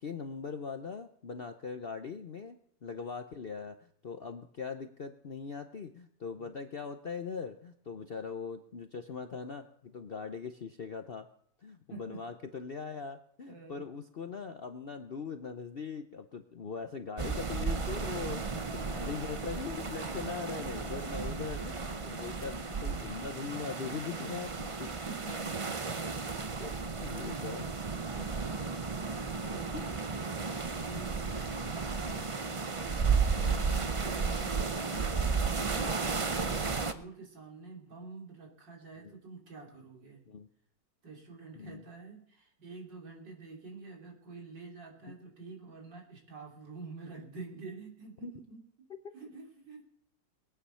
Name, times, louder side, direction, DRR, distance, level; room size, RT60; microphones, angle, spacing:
voice 1, 0.0-11.3 11.6-24.9 26.6-27.6 29.7-29.8 31.2-31.5 33.3-33.6 39.0-39.2 40.3-40.5 41.5-41.8 48.2-48.3 49.0-49.1, left 5 dB, 55° left, 7 dB, 0.6 m, -41 dB
voice 2, 11.9-12.2 13.5-13.8 18.5-19.2 20.0-20.3 21.2-21.4 22.1-22.5 25.0-25.8 27.2-27.5 28.1-30.0 30.7-32.9 33.3-40.2 41.0-48.6 49.1-49.8, right 4 dB, 85° right, -1 dB, 3.8 m, -48 dB
sound 1, 17.2-36.9, right 4 dB, 45° right, 0.4 m, -34 dB
21.5 x 9.2 x 5.6 m, 0.71 s
omnidirectional pair, 1.9 m